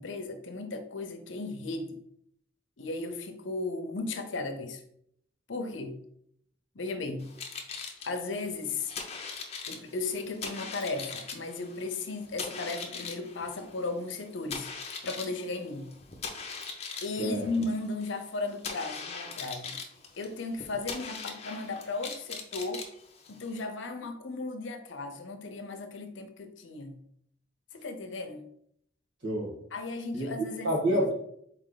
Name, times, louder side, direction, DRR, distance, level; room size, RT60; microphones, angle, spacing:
voice 1, 0.0-2.0 2.8-4.8 5.5-6.0 6.7-7.3 8.1-8.9 9.7-14.7 15.0-16.0 17.0-19.8 20.2-22.8 23.3-27.0 27.7-28.5 29.7-31.0, left 3 dB, 85° left, 7 dB, 0.7 m, -35 dB
sound 1, 7.2-23.6, left 5 dB, 35° left, 0.6 m, -41 dB
voice 2, 29.2-29.6 30.1-31.1, right 1 dB, 75° right, -1 dB, 1.5 m, -28 dB
4.3 x 3.2 x 3.9 m, 0.71 s
head